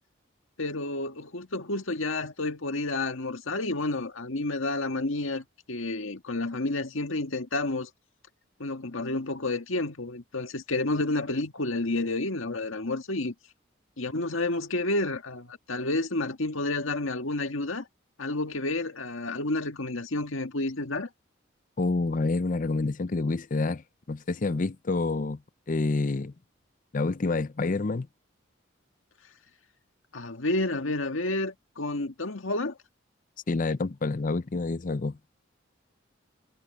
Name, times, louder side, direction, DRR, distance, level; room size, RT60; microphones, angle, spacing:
voice 1, 0.6-7.9 8.6-13.3 14.0-17.9 18.2-21.1 30.1-32.8, left 2 dB, 90° left, 1.8 m, -30 dB
voice 2, 21.8-23.8 24.1-25.4 25.7-26.3 26.9-28.1 33.5-35.1, left 3 dB, 40° left, 0.5 m, -28 dB
head